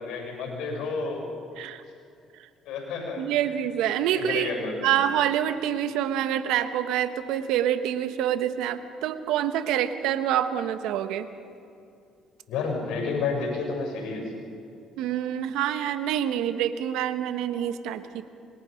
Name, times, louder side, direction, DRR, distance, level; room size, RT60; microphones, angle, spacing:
voice 1, 0.0-1.3 2.7-3.2 4.1-4.9 12.5-14.3, left 4 dB, 80° left, 0 dB, 7.0 m, -30 dB
voice 2, 3.2-4.5 4.8-11.3 15.0-18.2, right 10 dB, 80° right, 10 dB, 1.2 m, -26 dB
25.5 x 21.5 x 5.2 m, 2.5 s
cardioid pair, 85°, 0 cm